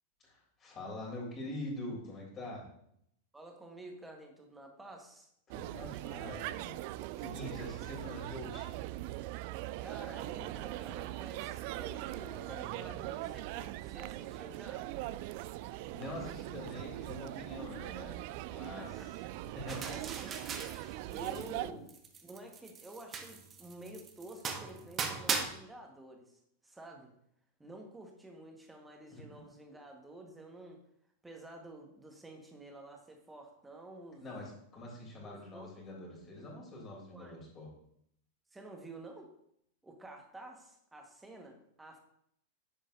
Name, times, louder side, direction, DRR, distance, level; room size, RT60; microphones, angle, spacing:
voice 1, 0.2-2.7 5.5-6.7 7.2-8.7 12.9-13.0 15.9-18.9 19.5-19.8 21.1-21.4 21.7-21.8 29.1-29.4 34.2-37.7, left 1 dB, 25° left, -2 dB, 3.5 m, -44 dB
voice 2, 3.3-5.3 5.9-6.0 9.8-14.9 18.7-19.1 19.9-20.5 21.1-21.9 22.2-27.1 27.6-30.8 31.2-34.3 35.2-35.8 36.1-36.2 37.1-37.4 38.5-39.3 39.8-42.0, right 2 dB, 10° right, 2 dB, 1.6 m, -50 dB
sound 1, 5.5-21.7, right 15 dB, 45° right, 0.3 m, -41 dB
sound 2, 19.7-21.6 21.9-25.5, right 5 dB, 25° right, 1.0 m, -39 dB
10.0 x 7.2 x 2.8 m, 0.72 s
figure-of-eight pair, 90°, 0 cm